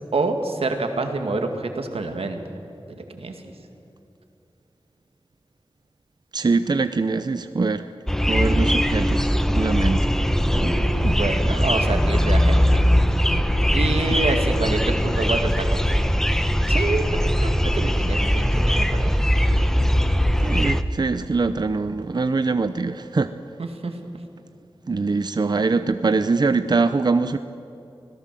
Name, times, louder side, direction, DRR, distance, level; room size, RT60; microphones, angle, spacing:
voice 1, 0.1-2.4 3.0-3.5 10.5-12.8 13.7-16.1 16.7-17.0 17.4-19.2 23.6-23.9, right 3 dB, 90° right, 5 dB, 2.2 m, -27 dB
voice 2, 6.3-7.9 8.3-10.1 20.4-23.3 24.9-27.4, right 4 dB, 45° right, 10 dB, 0.7 m, -23 dB
sound 1, 8.1-20.8, equal, 5° left, 1.0 m, -20 dB
25.0 x 17.5 x 7.6 m, 2.8 s
wide cardioid pair, 80°, 10 cm